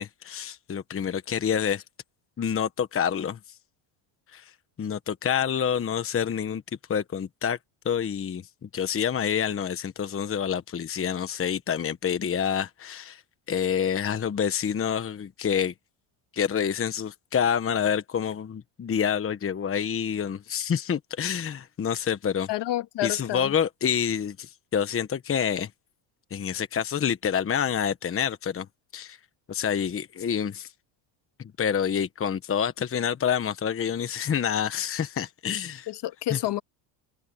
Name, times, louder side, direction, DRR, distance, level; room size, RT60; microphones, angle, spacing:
voice 1, 0.0-1.8 2.4-3.4 4.3-4.5 4.8-6.6 6.9-7.6 7.8-13.2 13.5-15.7 16.3-22.5 23.0-25.7 26.3-28.7 28.9-29.2 29.5-30.7 31.4-35.9 36.3-36.4, left 8 dB, 25° left, 1.2 m, -27 dB
voice 2, 22.5-23.5 35.9-36.6, left 14 dB, 55° left, 1.9 m, -29 dB
cardioid pair, 115°, 50 cm